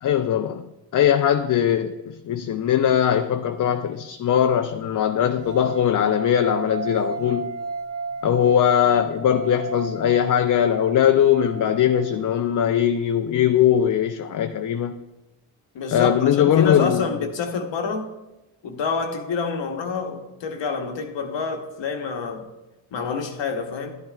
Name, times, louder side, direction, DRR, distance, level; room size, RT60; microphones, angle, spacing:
voice 1, 0.0-7.5 8.2-15.0 15.9-17.1, left 9 dB, 45° left, 0.5 m, -20 dB
sound 1, 5.4-12.5, right 3 dB, 85° right, 1.2 m, -34 dB
voice 2, 15.7-18.1 18.6-22.5 22.9-24.0, left 5 dB, 65° left, 1.0 m, -27 dB
10.5 x 8.9 x 2.4 m
supercardioid pair, 60°, 47 cm